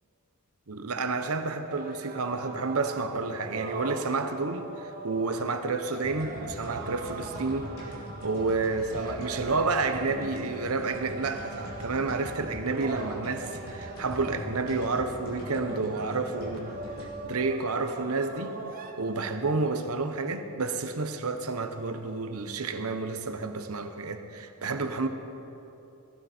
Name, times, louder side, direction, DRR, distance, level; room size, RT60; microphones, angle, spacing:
voice 1, 0.7-16.7 17.0-18.6 19.0-25.1, right 3 dB, 75° right, 8 dB, 0.9 m, -30 dB
sound 1, 1.6-18.9, right 3 dB, 40° right, 1.0 m, -41 dB
sound 2, 6.0-18.3, equal, 70° left, 3.5 m, -42 dB
18.0 x 12.5 x 4.4 m, 2.9 s
head